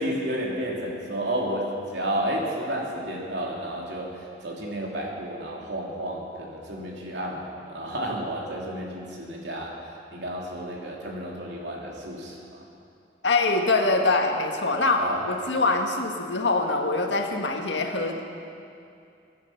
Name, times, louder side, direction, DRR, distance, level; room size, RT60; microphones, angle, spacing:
voice 1, 0.0-9.8 10.1-12.6 15.0-15.2 15.5-15.6, right 1 dB, 75° right, -2 dB, 3.0 m, -31 dB
voice 2, 13.2-18.2, left 3 dB, 85° left, 3 dB, 1.7 m, -24 dB
23.0 x 10.0 x 5.9 m, 2.5 s
head